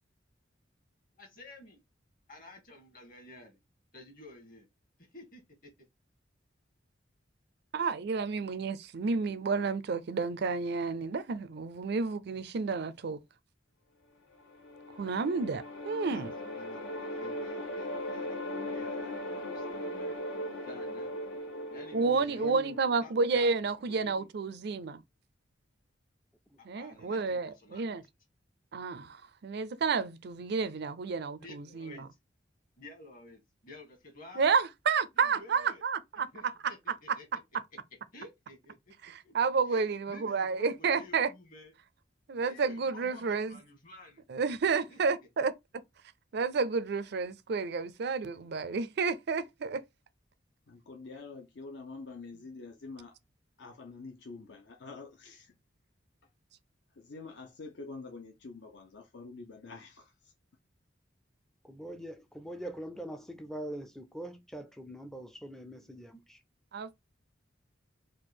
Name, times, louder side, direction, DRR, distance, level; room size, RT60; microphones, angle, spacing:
voice 1, 1.2-1.8 2.3-3.6 3.9-4.7 5.0-5.7 16.1-20.1 20.7-21.1 21.7-22.5 23.0-23.6 23.9-24.3 26.6-28.0 31.4-32.1 32.8-34.6 35.2-35.8 36.1-37.3 38.1-38.9 39.2-39.3 39.7-41.7 42.3-44.2 44.6-45.0, left 2 dB, 45° left, 1.8 m, -51 dB
voice 2, 7.7-13.2 15.0-16.3 21.9-25.0 26.7-28.0 28.7-32.0 34.4-36.3 39.0-41.3 42.3-43.6 44.3-45.5 46.3-49.8 66.7-66.9, right 4 dB, 60° right, 0.4 m, -30 dB
sound 1, 14.3-23.5, left 1 dB, 85° left, 1.4 m, -39 dB
voice 3, 22.0-22.8 26.5-26.6 61.6-66.4, right 1 dB, ahead, 0.4 m, -43 dB
voice 4, 50.7-53.2 53.6-55.6 56.9-60.3, left 3 dB, 65° left, 0.7 m, -46 dB
4.3 x 2.4 x 4.5 m
head